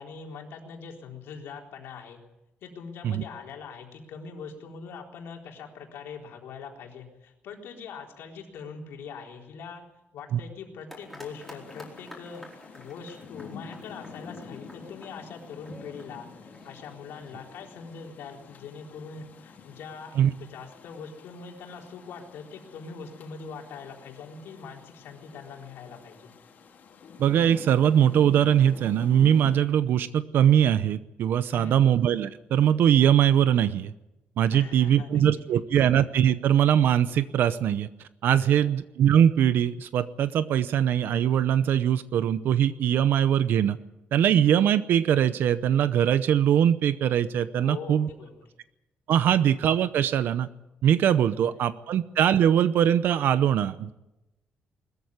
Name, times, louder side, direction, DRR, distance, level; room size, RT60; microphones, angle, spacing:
voice 1, 0.0-2.2 2.6-9.8 10.1-12.4 12.7-20.1 20.4-26.3 31.5-31.8 34.5-35.6 38.4-38.7 47.6-48.5 51.3-51.6, left 5 dB, 85° left, 1 dB, 4.0 m, -42 dB
sound 1, 10.9-18.1, left 1 dB, ahead, 4.6 m, -50 dB
Rain, 11.2-29.6, left 6 dB, 50° left, 2.7 m, -47 dB
voice 2, 27.2-33.9 34.4-37.9 38.2-43.8 44.1-48.1 49.1-50.5 50.8-53.9, right 9 dB, 65° right, 14 dB, 0.7 m, -22 dB
20.5 x 14.0 x 9.6 m, 0.94 s
cardioid pair, 170°, 4 cm